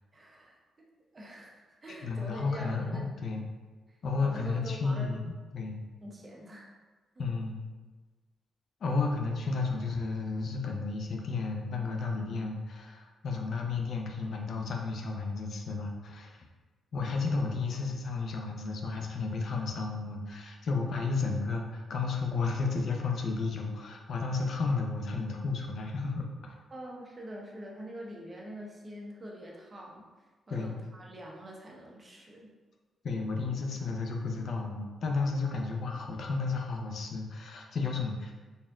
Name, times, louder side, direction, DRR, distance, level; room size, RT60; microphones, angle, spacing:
voice 1, 0.1-0.9 1.1-3.0 3.9-5.1 6.0-6.7 7.2-7.3 26.7-30.1 30.5-32.5, equal, 30° right, -2 dB, 0.8 m, -45 dB
voice 2, 1.9-3.4 4.0-5.8 7.2-7.6 8.8-16.5 16.9-26.6 30.5-30.8 33.0-38.3, left 4 dB, 60° left, 1 dB, 0.5 m, -32 dB
4.2 x 3.4 x 2.4 m, 1.3 s
cardioid pair, 95°, 0 cm